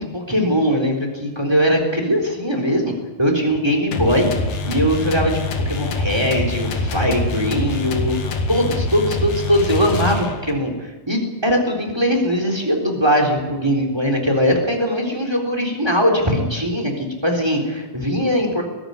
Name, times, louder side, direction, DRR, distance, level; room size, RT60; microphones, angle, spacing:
voice 1, 0.0-2.9 3.2-4.3 4.6-5.4 5.7-8.2 8.5-10.7 11.1-18.6, equal, 5° right, 2 dB, 3.3 m, -20 dB
sound 1, 3.9-10.6, left 2 dB, 75° left, 3.7 m, -25 dB
20.5 x 14.0 x 9.4 m, 1.2 s
omnidirectional pair, 4.0 m